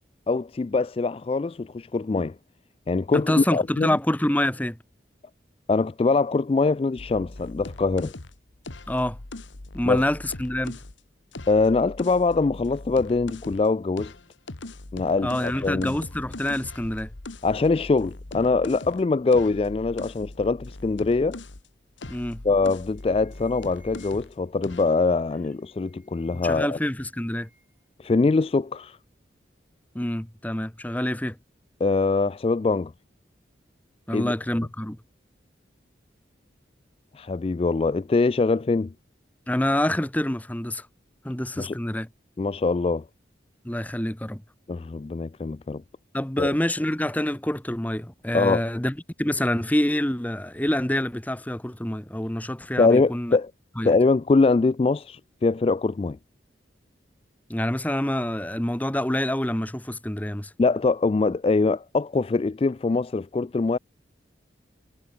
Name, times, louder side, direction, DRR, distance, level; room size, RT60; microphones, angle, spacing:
voice 1, 0.3-2.4 2.9-3.9 5.7-8.1 9.8-10.0 11.5-14.1 14.9-16.0 17.4-21.4 22.4-26.8 28.0-29.0 31.8-32.9 34.1-34.3 37.1-38.9 41.6-41.7 42.4-43.0 44.7-45.8 46.4-46.5 48.3-48.6 52.8-53.5 53.8-56.2 60.6-63.8, left 3 dB, 30° left, 0.3 m, -23 dB
voice 2, 3.1-4.8 8.9-9.2 9.7-10.8 15.2-17.1 22.1-22.4 26.3-27.5 29.9-31.4 34.1-35.0 39.5-40.9 41.2-42.1 43.6-44.4 46.1-53.4 53.8-53.9 57.5-60.5, left 1 dB, 10° left, 0.9 m, -27 dB
sound 1, 7.0-10.9 11.3-13.7 14.0-21.7 22.0-24.4 24.6-25.0, left 2 dB, 85° left, 1.6 m, -40 dB
sound 2, 22.3-22.6 22.8-24.5 25.3-26.8 27.0-27.8, right 1 dB, 10° right, 6.6 m, -61 dB
head